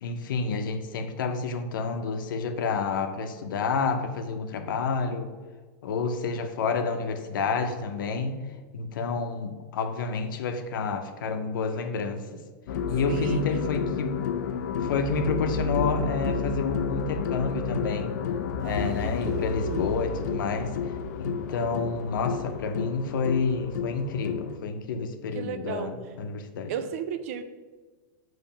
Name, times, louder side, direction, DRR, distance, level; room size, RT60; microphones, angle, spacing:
voice 1, 0.0-5.3 5.8-8.4 8.7-12.4 12.9-14.2 14.8-18.2 18.6-20.7 21.2-26.7, left 4 dB, 75° left, 7 dB, 0.7 m, -29 dB
sound 1, 12.7-24.6, left 6 dB, 55° left, 0.4 m, -31 dB
voice 2, 13.1-13.4 18.6-19.9 25.3-25.9 26.7-27.4, right 8 dB, 40° right, 9 dB, 0.4 m, -34 dB
7.2 x 3.1 x 5.7 m, 1.3 s
supercardioid pair, 180°, 11 cm